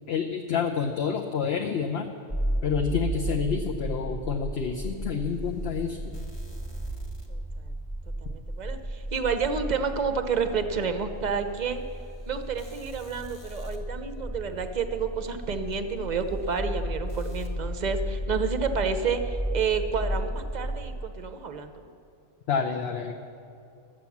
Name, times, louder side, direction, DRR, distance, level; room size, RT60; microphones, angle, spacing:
voice 1, 0.1-2.1 2.6-6.2 22.5-23.1, left 6 dB, 60° left, 3 dB, 0.9 m, -28 dB
sound 1, 2.3-20.9, right 1 dB, 20° left, 1.1 m, -34 dB
voice 2, 7.3-7.7 8.2-11.8 12.3-21.8, right 5 dB, 45° right, 8 dB, 0.7 m, -30 dB
12.0 x 7.7 x 7.1 m, 2.5 s
omnidirectional pair, 1.3 m